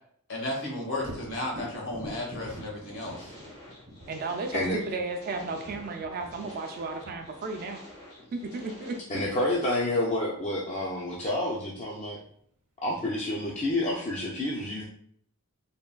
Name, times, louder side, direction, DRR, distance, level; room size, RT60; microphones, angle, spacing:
voice 1, 0.3-3.3 6.4-6.6, left 1 dB, 60° left, -2 dB, 0.9 m, -34 dB
Thunder, 1.0-8.7 12.3-12.4 12.9-13.8, equal, 65° right, 0.8 m, -46 dB
sound 1, 2.4-9.0, left 1 dB, 80° left, 1.2 m, -49 dB
voice 2, 4.1-7.8 8.3-8.9, right 3 dB, 40° right, 4 dB, 0.3 m, -34 dB
voice 3, 9.1-12.2 12.8-14.8, left 1 dB, 30° left, -5 dB, 0.4 m, -29 dB
3.4 x 2.2 x 2.2 m, 0.64 s
head